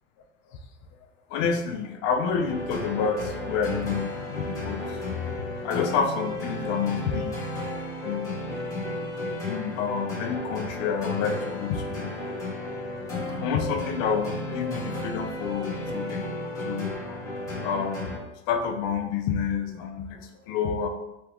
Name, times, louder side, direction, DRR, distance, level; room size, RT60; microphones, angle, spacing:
voice 1, 1.3-7.4 7.7-8.3 9.5-12.2 13.4-16.2 16.6-18.2 18.5-20.9, left 6 dB, 55° left, 4 dB, 0.5 m, -29 dB
sound 1, 2.4-18.2, left 2 dB, 10° left, 1.2 m, -33 dB
3.4 x 2.9 x 2.3 m, 0.91 s
supercardioid pair, 135°, 39 cm